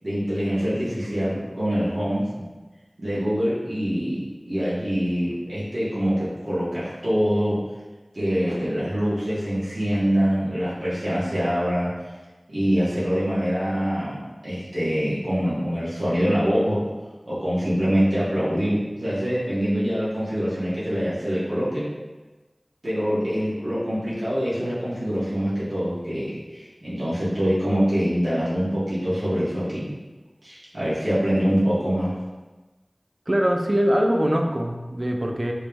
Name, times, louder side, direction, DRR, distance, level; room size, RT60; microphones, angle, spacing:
voice 1, 0.0-2.2 3.0-7.6 8.1-11.9 12.5-16.8 17.3-21.8 22.8-29.8 30.4-32.1, equal, 70° right, -10 dB, 1.4 m, -24 dB
voice 2, 33.3-35.5, equal, 40° right, 2 dB, 0.4 m, -22 dB
3.1 x 3.0 x 3.5 m, 1.2 s
wide cardioid pair, 45°, 0 cm